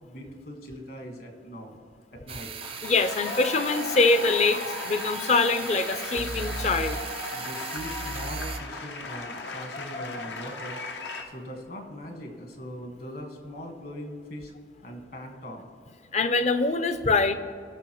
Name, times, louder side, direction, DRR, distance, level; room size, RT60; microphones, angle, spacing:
voice 1, 0.0-1.8 2.1-2.5 7.3-10.8 11.2-14.5 14.8-15.7, equal, 55° left, 2 dB, 1.7 m, -40 dB
sound 1, 2.3-8.6, right 5 dB, 35° right, 0.4 m, -37 dB
sound 2, 2.4-11.2, left 3 dB, 85° left, 0.9 m, -36 dB
voice 2, 2.8-7.0 16.1-17.3, left 3 dB, 40° left, 10 dB, 0.5 m, -24 dB
17.5 x 6.3 x 3.0 m, 2.2 s
head